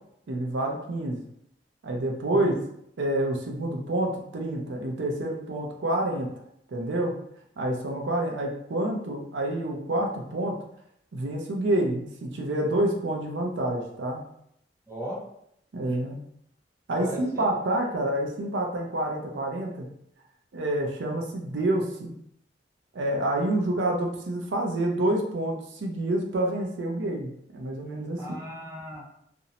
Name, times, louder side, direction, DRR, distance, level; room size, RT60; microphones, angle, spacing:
voice 1, 0.3-1.2 1.8-2.5 3.0-6.3 6.7-7.1 7.6-10.6 11.1-14.2 15.7-16.2 16.9-19.9 20.5-22.1 22.9-28.4, right 1 dB, 85° right, 1 dB, 0.5 m, -28 dB
voice 2, 14.9-15.2 17.0-17.4 28.2-29.1, equal, 15° right, -4 dB, 0.6 m, -37 dB
2.5 x 2.0 x 2.8 m, 0.72 s
head